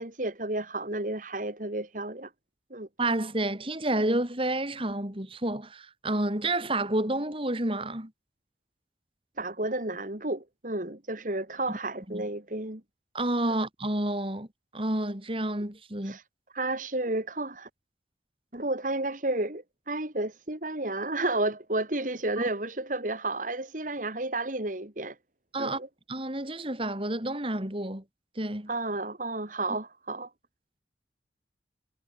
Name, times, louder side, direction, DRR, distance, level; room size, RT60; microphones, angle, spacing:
voice 1, 0.0-2.3 2.7-2.9 9.4-12.8 16.1-16.2 16.5-17.7 18.5-25.2 25.6-25.9 28.7-30.3, right 2 dB, 50° right, 2.8 m, -32 dB
voice 2, 3.0-8.1 11.7-11.8 12.1-12.3 13.1-14.5 14.7-16.2 22.4-22.5 25.5-25.8 26.1-28.0 28.4-28.7, right 1 dB, 30° right, 3.5 m, -29 dB
head